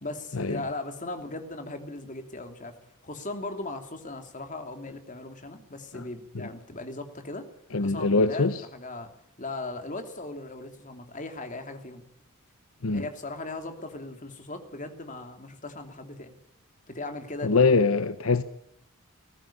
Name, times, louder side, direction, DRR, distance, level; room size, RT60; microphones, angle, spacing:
voice 1, 0.0-2.8 3.0-7.5 7.8-9.1 9.4-12.0 12.9-16.3 16.9-17.7, left 2 dB, 35° left, 2.8 m, -38 dB
voice 2, 7.7-8.6 12.8-13.1 17.4-18.4, left 3 dB, 75° left, 0.9 m, -23 dB
21.0 x 15.5 x 8.7 m
head